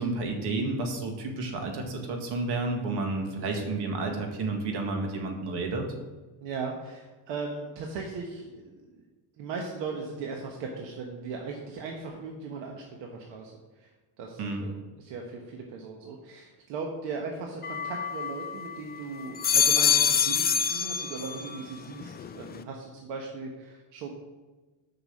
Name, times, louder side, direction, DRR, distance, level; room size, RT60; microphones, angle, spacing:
voice 1, 0.0-5.9 14.4-14.6, right 3 dB, 70° right, 2 dB, 2.0 m, -31 dB
voice 2, 6.4-9.0 9.4-13.9 14.2-24.1, right 4 dB, 90° right, 1 dB, 1.3 m, -38 dB
sound 1, 17.6-18.8 19.2-21.6 22.0-22.6, left 7 dB, 25° left, 0.4 m, -26 dB
6.8 x 6.1 x 7.4 m, 1.2 s
cardioid pair, 140°, 42 cm